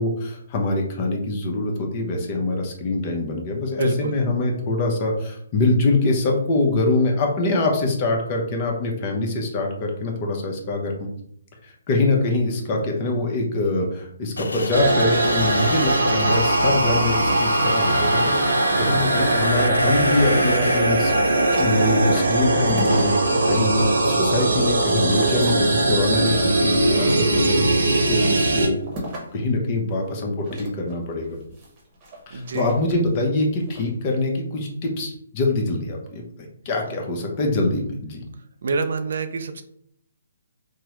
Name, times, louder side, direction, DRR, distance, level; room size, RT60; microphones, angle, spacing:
voice 1, 0.0-10.9 11.6-28.8 29.1-31.3 32.3-36.2 36.6-38.2, left 2 dB, 35° left, 1 dB, 0.7 m, -24 dB
voice 2, 3.8-4.1 32.3-32.7 38.6-39.6, right 3 dB, 60° right, 8 dB, 0.3 m, -26 dB
sound 1, 14.4-20.8, left 2 dB, 80° left, 0.4 m, -30 dB
sound 2, 14.7-28.7, right 2 dB, 80° right, 0.8 m, -20 dB
sound 3, 21.2-23.5 23.9-26.2 26.7-27.6 28.1-29.4 30.4-33.1 33.6-33.9, equal, 25° right, 1.0 m, -36 dB
3.4 x 2.1 x 3.0 m, 0.68 s
hypercardioid pair, 145°, 0 cm